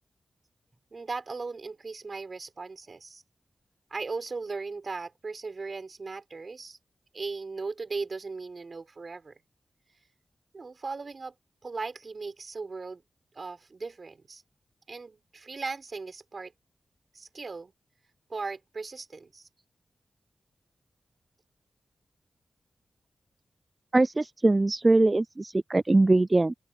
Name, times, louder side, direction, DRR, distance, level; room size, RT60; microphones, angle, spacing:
voice 1, 0.9-3.2 3.9-6.8 7.1-9.3 10.5-11.3 11.6-13.0 13.3-14.4 14.9-16.5 17.1-17.7 18.3-19.5, right 4 dB, 55° right, 6.2 m, -37 dB
voice 2, 23.9-26.5, right 2 dB, 30° right, 0.3 m, -22 dB
open air
cardioid pair, 65°, 0 cm